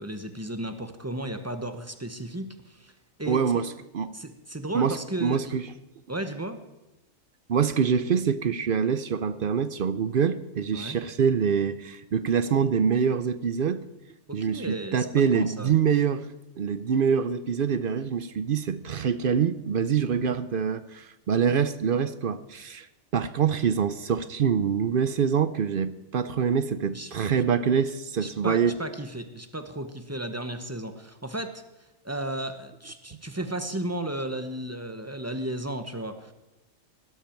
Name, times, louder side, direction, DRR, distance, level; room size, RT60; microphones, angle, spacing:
voice 1, 0.0-2.9 3.2-3.6 4.1-5.5 6.1-6.6 10.7-11.0 14.3-15.1 15.3-15.7 26.9-27.1 28.2-31.6 32.0-36.3, right 1 dB, 15° right, 8 dB, 0.9 m, -34 dB
voice 2, 3.3-4.1 4.7-5.6 7.5-13.8 14.3-16.2 16.6-22.9 23.1-28.8, right 7 dB, 55° right, 14 dB, 0.6 m, -25 dB
17.0 x 12.5 x 4.5 m, 0.99 s
omnidirectional pair, 1.4 m